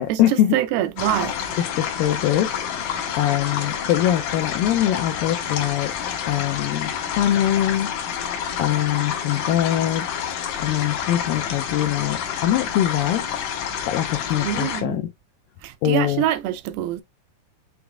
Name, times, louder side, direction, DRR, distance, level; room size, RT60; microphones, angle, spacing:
voice 1, 0.0-0.6 1.6-5.9 6.3-7.9 8.6-10.1 10.6-13.3 13.9-15.1 15.8-16.2, left 12 dB, 85° left, 2.0 m, -23 dB
voice 2, 0.5-1.4 14.4-15.0 15.6-17.0, right 12 dB, 80° right, 2.2 m, -25 dB
sound 1, 1.0-14.8, left 8 dB, 65° left, 2.2 m, -28 dB
7.1 x 3.2 x 2.3 m
omnidirectional pair, 4.5 m